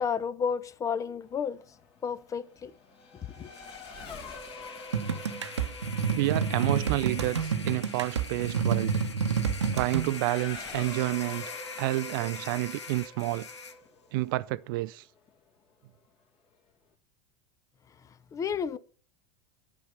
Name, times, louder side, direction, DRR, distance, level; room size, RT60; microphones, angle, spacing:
voice 1, 0.0-1.6 2.0-2.7 3.4-3.5 18.3-18.8, left 7 dB, 20° left, 0.7 m, -31 dB
Race car auto racing / Accelerating revving vroom, 1.2-15.3, left 3 dB, 40° left, 2.2 m, -47 dB
sound 1, 3.3-13.8, left 5 dB, 80° left, 1.5 m, -43 dB
sound 2, 4.9-10.1, right 6 dB, 75° right, 1.0 m, -29 dB
voice 2, 6.1-9.0 9.7-13.5 14.1-15.0, right 18 dB, 50° right, 0.4 m, -29 dB
10.5 x 5.1 x 6.7 m
figure-of-eight pair, 85°, 15 cm